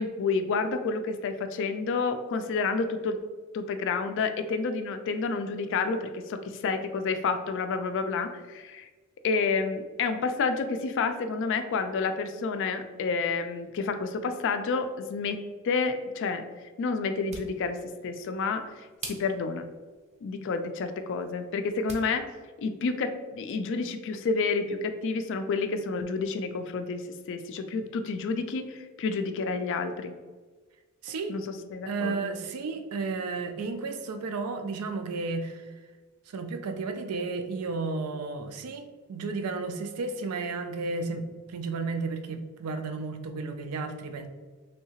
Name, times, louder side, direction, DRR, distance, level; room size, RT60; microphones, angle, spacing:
voice 1, 0.0-3.2 3.5-8.9 9.2-15.4 15.6-16.4 16.8-19.7 20.2-22.3 22.6-27.0 27.3-30.1 31.3-32.4, left 4 dB, 55° left, 8 dB, 0.3 m, -29 dB
sound 1, 17.0-22.1, right 3 dB, 30° right, 0.5 m, -47 dB
voice 2, 31.0-31.3 31.9-35.7 36.3-44.3, right 3 dB, 85° right, 7 dB, 0.4 m, -33 dB
3.4 x 2.8 x 2.8 m, 1.4 s
head